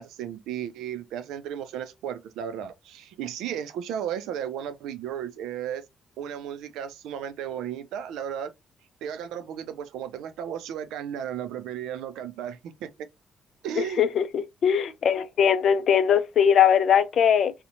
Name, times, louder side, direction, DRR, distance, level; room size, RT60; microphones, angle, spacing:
voice 1, 0.0-5.8 6.2-8.5 9.0-13.1 13.6-14.0, right 9 dB, 90° right, 0.4 m, -34 dB
voice 2, 13.8-14.2 14.6-17.5, left 8 dB, 65° left, 0.4 m, -20 dB
2.8 x 2.1 x 2.6 m
cardioid pair, 90°, 0 cm